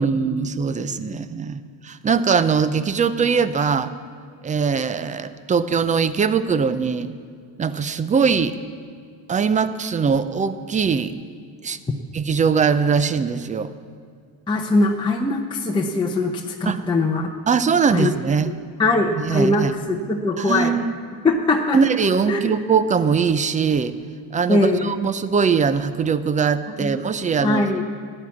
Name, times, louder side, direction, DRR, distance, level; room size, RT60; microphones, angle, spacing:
voice 1, 0.0-3.9 4.4-7.1 7.6-8.5 9.3-11.1 11.6-11.8 12.1-13.7 16.7-16.9 17.5-18.5 19.1-19.7 20.4-20.9 21.7-24.0 24.3-27.7, right 6 dB, 15° right, 13 dB, 0.4 m, -21 dB
voice 2, 14.5-16.3 16.6-17.3 17.9-18.1 18.8-20.8 21.2-21.8 22.3-22.5 24.5-25.0 26.8-26.9 27.4-27.8, left 2 dB, 10° left, -1 dB, 0.8 m, -21 dB
14.0 x 9.9 x 7.2 m, 2.1 s
cardioid pair, 120°, 49 cm